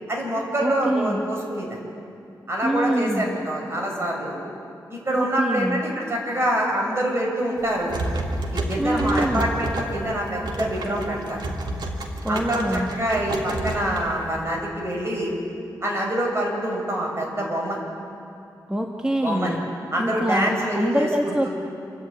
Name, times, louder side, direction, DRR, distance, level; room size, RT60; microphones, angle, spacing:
voice 1, 0.1-1.8 2.5-4.4 4.9-8.0 8.5-11.4 12.3-15.3 15.8-17.8 19.2-19.6 19.9-21.5, right 1 dB, 35° right, -1 dB, 5.8 m, -26 dB
voice 2, 0.6-1.2 2.6-3.3 5.2-5.8 8.8-9.5 12.2-12.9 18.7-19.5 20.0-21.5, equal, 10° right, 1 dB, 1.5 m, -25 dB
sound 1, 7.6-14.4, right 2 dB, 80° right, 2.4 m, -30 dB
28.0 x 11.0 x 8.7 m, 2.6 s
wide cardioid pair, 100°, 8 cm